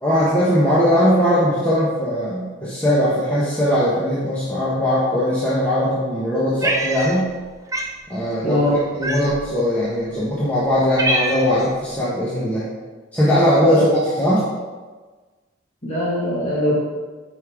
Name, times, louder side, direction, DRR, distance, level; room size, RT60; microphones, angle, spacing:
voice 1, 0.0-7.3 8.1-12.7 13.1-13.9 14.2-14.4, equal, 10° left, -10 dB, 1.3 m, -19 dB
Cat, 6.6-7.4 7.7-8.0 9.0-9.5 10.2-10.3 10.7-11.7, right 2 dB, 15° right, 0.5 m, -24 dB
voice 2, 8.4-8.8 13.7-14.0 15.8-16.8, left 1 dB, 35° left, -8 dB, 2.1 m, -21 dB
9.1 x 5.5 x 3.7 m, 1.3 s
head